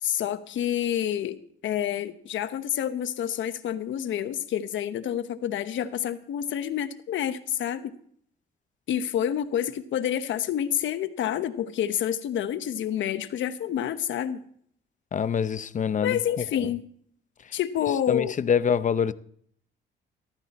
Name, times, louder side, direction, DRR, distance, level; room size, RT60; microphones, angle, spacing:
voice 1, 0.0-7.9 8.9-14.4 16.0-16.9 17.5-18.4, left 10 dB, 75° left, 1.0 m, -28 dB
voice 2, 15.1-16.4 18.1-19.1, left 7 dB, 40° left, 0.7 m, -25 dB
14.0 x 13.0 x 4.2 m
cardioid pair, 90°, 20 cm